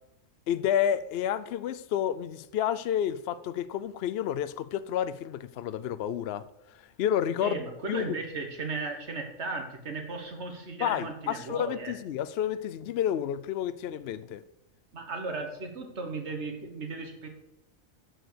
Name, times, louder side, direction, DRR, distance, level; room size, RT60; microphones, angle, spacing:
voice 1, 0.5-7.6 7.9-8.2 10.8-14.4, left 10 dB, 65° left, 0.7 m, -30 dB
voice 2, 7.4-11.9 14.9-17.3, right 3 dB, 55° right, 1.8 m, -36 dB
7.9 x 6.5 x 6.8 m
omnidirectional pair, 1.4 m